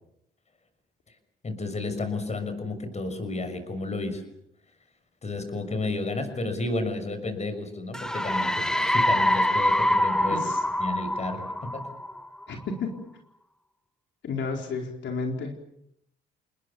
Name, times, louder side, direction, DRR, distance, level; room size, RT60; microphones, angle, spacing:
voice 1, 1.4-4.2 5.2-10.5 10.8-11.9, left 2 dB, 35° left, 9 dB, 6.3 m, -32 dB
sound 1, 7.9-12.5, left 1 dB, 5° left, 1.2 m, -25 dB
voice 2, 10.3-10.6 12.5-12.9 14.2-15.5, left 4 dB, 65° left, 3 dB, 4.3 m, -31 dB
29.5 x 20.0 x 7.1 m, 0.76 s
cardioid pair, 90°, 20 cm